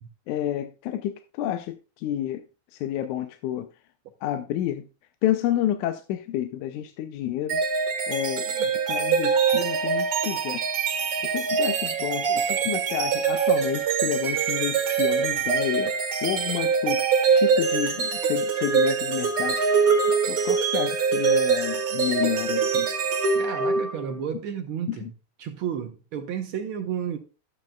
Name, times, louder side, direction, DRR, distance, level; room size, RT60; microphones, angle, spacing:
voice 1, 0.3-2.4 2.7-3.7 4.2-4.9 5.2-7.6 8.1-10.6 11.2-19.6 20.3-22.9 24.9-25.1, left 12 dB, 85° left, 2.1 m, -30 dB
sound 1, 7.5-24.1, right 6 dB, 50° right, 2.0 m, -24 dB
voice 2, 23.4-25.1 25.4-27.2, right 8 dB, 75° right, 1.2 m, -32 dB
11.5 x 8.9 x 2.3 m
omnidirectional pair, 3.4 m